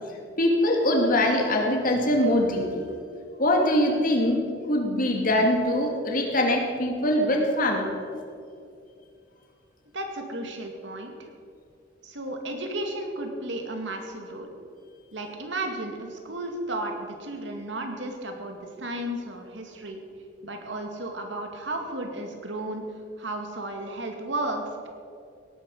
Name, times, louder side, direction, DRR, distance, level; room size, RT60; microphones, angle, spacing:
voice 1, 0.4-2.8 3.4-4.4 4.7-7.9, left 1 dB, 50° left, 2 dB, 2.5 m, -23 dB
voice 2, 9.9-11.3 12.0-14.5 15.1-20.0 20.4-22.9 23.2-24.9, right 1 dB, 80° right, 3 dB, 2.3 m, -33 dB
18.0 x 11.5 x 5.5 m, 2.4 s
head